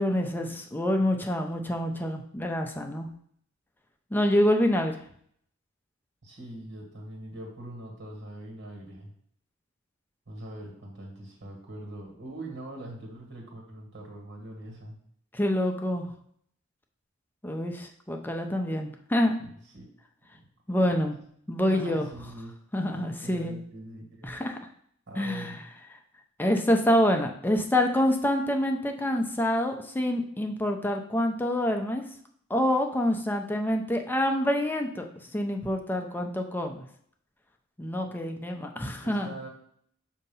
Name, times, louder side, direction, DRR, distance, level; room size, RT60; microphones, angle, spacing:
voice 1, 0.0-3.1 4.1-5.0 15.3-16.1 17.4-19.4 20.7-21.1 21.5-22.1 22.7-23.6 24.2-24.6 25.2-25.5 26.4-32.0 32.5-35.1 35.3-36.8 37.8-39.3, left 1 dB, 10° left, 4 dB, 0.5 m, -26 dB
voice 2, 6.2-9.1 10.3-15.0 19.4-19.9 20.8-21.1 21.6-22.5 22.9-24.4 25.1-25.6 39.0-39.5, right 1 dB, 60° right, 1 dB, 1.7 m, -42 dB
6.6 x 2.8 x 5.4 m, 0.64 s
head